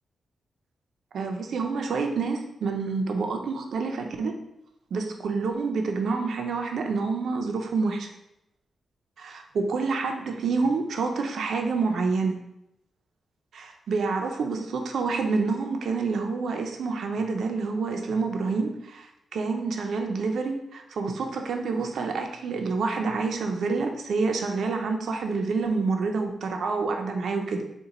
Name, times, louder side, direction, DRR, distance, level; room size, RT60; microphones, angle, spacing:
voice 1, 1.1-4.3 4.9-8.1 9.2-12.4 13.5-27.6, right 4 dB, 75° right, 4 dB, 0.4 m, -28 dB
4.1 x 2.2 x 3.8 m, 0.84 s
wide cardioid pair, 115°, 0 cm